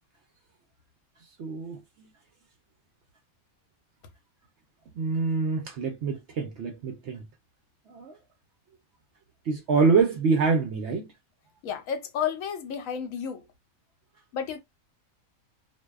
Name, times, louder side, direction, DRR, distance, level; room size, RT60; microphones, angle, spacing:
voice 1, 1.4-1.8 5.0-7.2 7.9-8.2 9.5-11.1, right 4 dB, 65° right, 0.7 m, -25 dB
voice 2, 11.6-13.4 14.3-14.6, left 8 dB, 70° left, 0.9 m, -31 dB
2.5 x 2.1 x 2.2 m
omnidirectional pair, 1.5 m